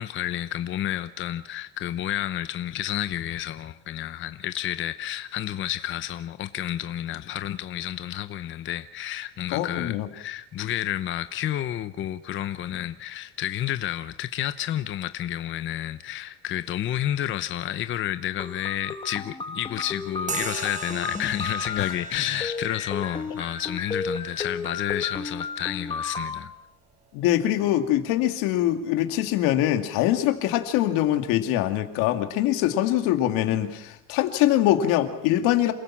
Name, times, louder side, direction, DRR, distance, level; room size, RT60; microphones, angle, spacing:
voice 1, 0.0-26.5, left 12 dB, 35° left, 0.8 m, -30 dB
voice 2, 9.5-10.1 27.1-35.7, left 13 dB, 80° left, 2.4 m, -23 dB
sound 1, 18.4-26.4, left 4 dB, 15° left, 1.5 m, -33 dB
sound 2, 20.3-28.2, right 5 dB, 20° right, 1.4 m, -41 dB
28.0 x 16.0 x 7.4 m
cardioid pair, 140°, 33 cm